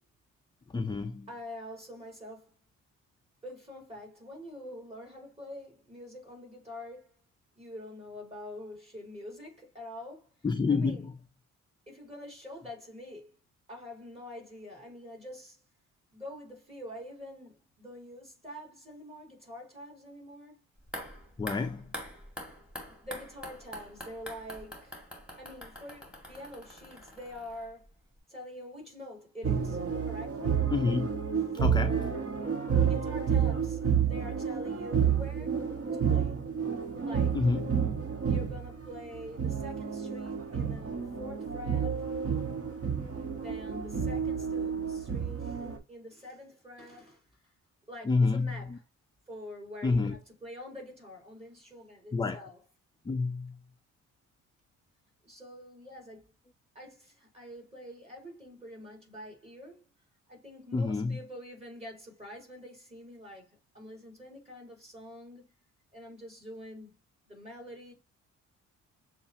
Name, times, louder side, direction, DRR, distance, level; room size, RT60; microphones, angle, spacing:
voice 1, 0.7-1.3 10.4-11.1 21.4-21.9 30.7-31.1 31.6-32.0 37.3-37.8 48.0-48.8 49.8-50.2 52.1-52.5 53.1-53.6 60.7-61.2, left 4 dB, 15° left, 0.4 m, -28 dB
voice 2, 1.3-2.5 3.4-7.2 7.5-10.3 10.7-11.1 11.9-13.4 13.7-15.6 16.1-20.6 21.7-22.0 22.9-25.0 25.4-27.9 28.3-30.6 31.6-32.3 32.6-35.6 35.9-36.4 37.0-37.4 38.3-42.1 43.3-47.3 47.9-48.8 49.3-52.6 55.2-56.3 56.7-59.9 60.3-65.5 65.9-67.0 67.2-67.9, left 1 dB, 20° right, 3.2 m, -46 dB
sound 1, 20.8-27.9 28.2-28.3, equal, 5° right, 1.9 m, -45 dB
sound 2, 29.4-45.8, right 7 dB, 50° right, 1.3 m, -30 dB
6.8 x 2.4 x 2.8 m
cardioid pair, 90°, 30 cm